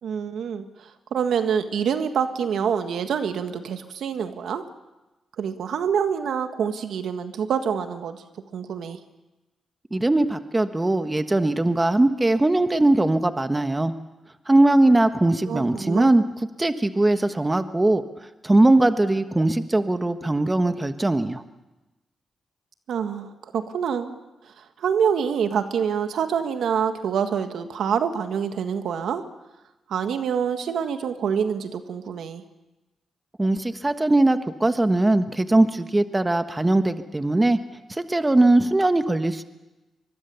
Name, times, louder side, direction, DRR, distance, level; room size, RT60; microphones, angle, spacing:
voice 1, 0.0-4.6 5.4-8.2 8.5-9.0 15.5-16.1 22.9-24.2 24.4-29.2 29.9-32.4, right 7 dB, 80° right, 8 dB, 1.7 m, -26 dB
voice 2, 9.9-13.9 14.5-16.2 16.6-18.0 18.4-21.4 33.4-37.6 37.9-39.4, right 2 dB, 20° right, 9 dB, 1.4 m, -20 dB
24.0 x 21.5 x 7.1 m, 1.1 s
cardioid pair, 75°, 0 cm